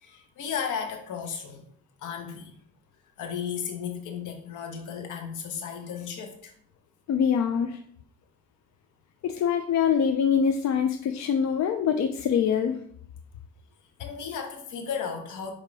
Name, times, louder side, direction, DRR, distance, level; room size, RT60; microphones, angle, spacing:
voice 1, 0.0-1.6 2.0-2.6 3.2-6.5 14.0-15.5, left 7 dB, 85° left, 4 dB, 1.3 m, -34 dB
voice 2, 7.1-7.8 9.2-12.8, left 7 dB, 65° left, 6 dB, 0.6 m, -24 dB
7.5 x 2.9 x 4.7 m, 0.63 s
cardioid pair, 90°, 30 cm